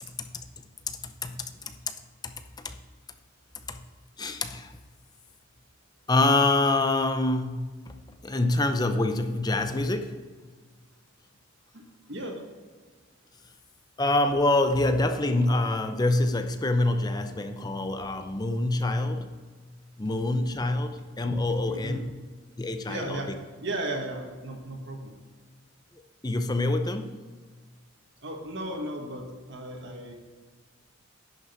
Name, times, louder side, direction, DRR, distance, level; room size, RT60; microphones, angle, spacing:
voice 1, 0.1-0.5 0.9-1.8 2.2-2.8 3.7-3.9 4.2-4.8 6.1-7.9 8.2-10.2 14.0-19.4 20.0-22.2 22.6-23.2 26.2-27.2, left 2 dB, 20° left, 8 dB, 0.6 m, -26 dB
voice 2, 11.7-12.4 21.6-22.0 22.9-23.3 23.6-25.1 28.2-30.1, right 1 dB, 55° right, 1 dB, 1.7 m, -35 dB
10.5 x 6.4 x 4.5 m, 1.5 s
head